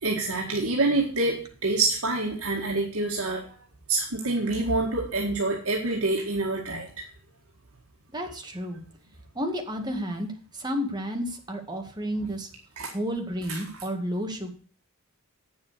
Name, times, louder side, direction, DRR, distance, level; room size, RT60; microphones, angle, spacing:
voice 1, 0.0-3.4 3.9-6.9 12.8-12.9 13.5-13.6, right 2 dB, 80° right, -1 dB, 1.9 m, -26 dB
voice 2, 8.1-8.8 9.4-10.3 10.5-12.5 12.9-14.5, equal, 20° right, 3 dB, 1.9 m, -31 dB
8.9 x 7.2 x 6.6 m, 0.42 s
head